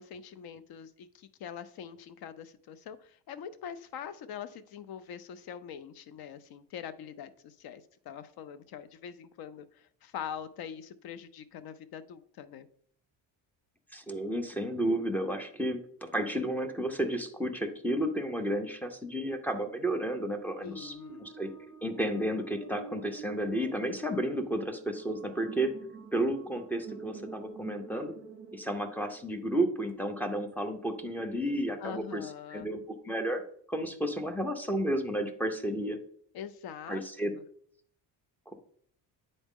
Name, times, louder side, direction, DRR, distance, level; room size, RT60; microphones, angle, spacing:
voice 1, 0.0-12.7 20.6-21.3 31.8-32.7 36.3-37.4, left 8 dB, 60° left, 13 dB, 0.6 m, -43 dB
voice 2, 13.9-21.0 21.2-21.5 21.8-25.7 26.1-28.1 28.5-32.2 32.5-33.4 33.7-36.0 36.9-37.3, right 1 dB, 5° left, 4 dB, 0.4 m, -32 dB
sound 1, 20.4-29.7, right 5 dB, 30° right, 0.8 m, -47 dB
9.2 x 4.0 x 3.6 m, 0.63 s
cardioid pair, 160°, 42 cm